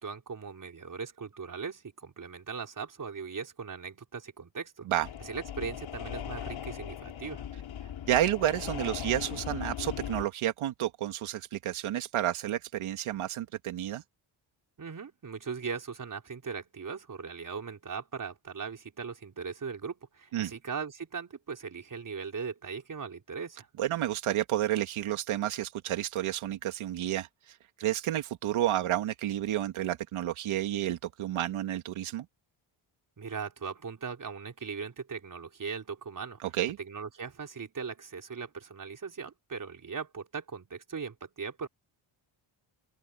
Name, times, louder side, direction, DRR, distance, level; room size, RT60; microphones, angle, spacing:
voice 1, 0.0-4.9 5.2-7.4 14.8-23.7 33.2-36.4 36.8-41.7, right 5 dB, 40° right, 4.3 m, -39 dB
sound 1, 5.0-10.3, left 10 dB, 70° left, 4.2 m, -39 dB
voice 2, 8.1-14.0 20.3-20.5 23.8-32.3 36.4-36.8, right 12 dB, 85° right, 2.1 m, -30 dB
open air
cardioid pair, 90°, 48 cm